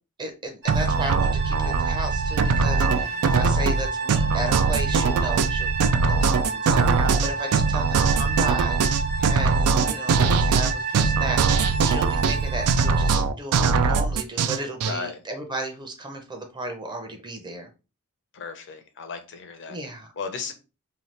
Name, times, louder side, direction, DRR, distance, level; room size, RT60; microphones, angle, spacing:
voice 1, 0.2-5.7 6.0-8.8 9.3-17.7 19.7-20.1, right 1 dB, 20° right, 0.6 m, -34 dB
sound 1, 0.6-13.1, right 4 dB, 55° right, 1.0 m, -31 dB
sound 2, 0.7-14.9, right 5 dB, 70° right, 0.3 m, -21 dB
voice 2, 2.8-3.2 9.2-9.6 14.8-15.2 18.3-19.8 20.1-20.5, left 5 dB, 55° left, 0.6 m, -36 dB
2.8 x 2.3 x 3.2 m
head